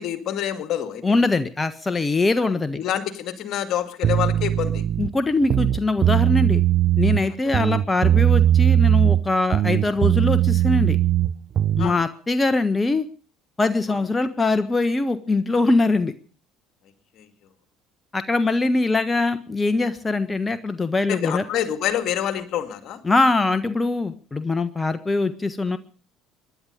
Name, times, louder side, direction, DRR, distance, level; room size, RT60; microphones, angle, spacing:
voice 1, 0.0-1.0 2.8-4.8 11.8-12.0 17.2-17.3 21.1-23.0, left 10 dB, 55° left, 10 dB, 2.3 m, -27 dB
voice 2, 1.0-2.8 5.0-6.6 7.0-11.0 11.8-13.1 13.6-16.1 18.1-21.4 23.0-25.8, left 3 dB, 20° left, 11 dB, 1.3 m, -22 dB
sound 1, 4.0-5.1 5.4-7.2 7.5-9.3 9.5-11.9, right 11 dB, 50° right, 0.8 m, -19 dB
24.5 x 11.0 x 5.2 m, 0.41 s
hypercardioid pair, 60°, 0 cm